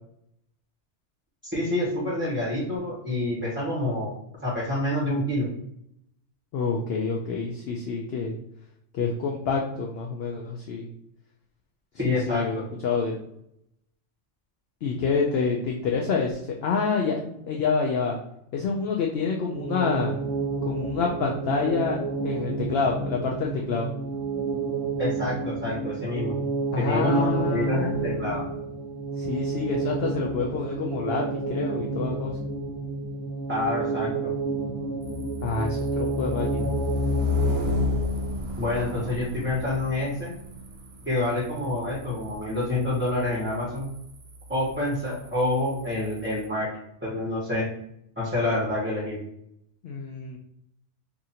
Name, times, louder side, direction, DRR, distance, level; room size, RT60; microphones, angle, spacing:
voice 1, 1.5-4.1 4.4-5.5 12.0-12.6 25.0-26.4 26.8-28.4 33.5-34.3 38.6-40.3 41.1-43.9 44.5-46.7 47.0-47.6 48.2-49.2, left 1 dB, 10° right, -7 dB, 0.8 m, -27 dB
voice 2, 6.5-8.3 8.9-10.9 12.1-13.2 14.8-18.2 18.5-20.1 20.6-22.0 22.2-23.9 26.7-28.4 29.2-32.4 35.4-36.7 49.8-50.4, left 5 dB, 65° left, -1 dB, 0.7 m, -27 dB
sound 1, 19.5-38.3, right 3 dB, 30° right, 0.4 m, -30 dB
sound 2, 35.0-46.5, left 4 dB, 60° right, 0.9 m, -32 dB
2.7 x 2.5 x 4.2 m, 0.76 s
omnidirectional pair, 1.3 m